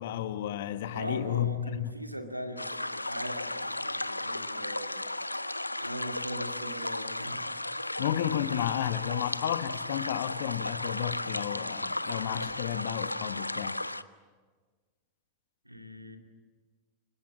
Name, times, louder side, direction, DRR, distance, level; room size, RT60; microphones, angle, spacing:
voice 1, 0.0-2.0 8.0-13.8, left 11 dB, 55° left, 1.4 m, -32 dB
voice 2, 0.9-5.0 5.8-7.5 15.6-16.2, equal, 85° right, 2.4 m, -40 dB
sound 1, 2.6-14.0, left 2 dB, 85° left, 0.7 m, -35 dB
29.5 x 24.5 x 7.6 m
figure-of-eight pair, 90°, 0 cm